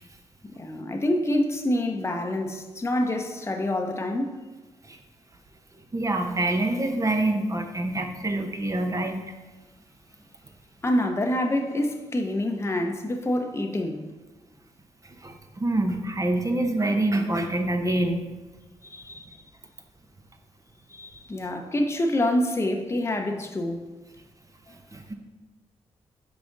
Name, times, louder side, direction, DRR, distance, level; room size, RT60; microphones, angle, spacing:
voice 1, 0.5-4.3 10.8-14.0 18.8-19.4 20.9-23.8, left 1 dB, 20° left, 3 dB, 0.7 m, -26 dB
voice 2, 5.9-9.2 15.2-18.2 24.9-25.1, right 2 dB, 30° right, 5 dB, 0.8 m, -26 dB
5.0 x 4.8 x 3.9 m, 1.2 s
supercardioid pair, 50°, 12 cm